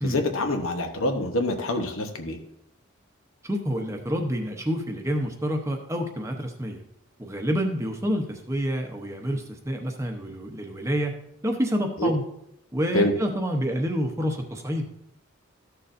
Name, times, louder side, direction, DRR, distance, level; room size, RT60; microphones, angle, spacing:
voice 1, 0.0-2.4 12.0-12.1 12.9-13.1, left 1 dB, 75° left, 5 dB, 1.0 m, -25 dB
voice 2, 3.4-6.8 7.2-11.1 11.4-12.2 12.7-14.9, equal, 15° right, 3 dB, 0.8 m, -28 dB
13.5 x 6.7 x 2.6 m, 0.78 s
head